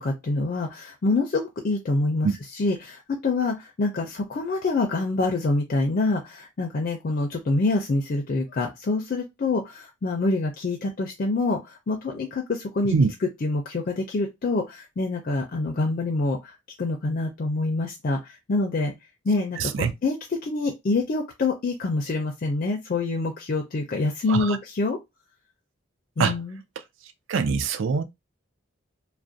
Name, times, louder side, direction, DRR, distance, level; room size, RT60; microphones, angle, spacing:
voice 1, 0.0-12.9 13.4-18.9 19.3-25.0 26.2-26.6, left 3 dB, 45° left, 0.4 m, -26 dB
voice 2, 19.6-19.9 24.3-24.6 26.2-26.3 27.3-28.0, right 5 dB, 75° right, 0.4 m, -23 dB
2.4 x 2.1 x 2.5 m
head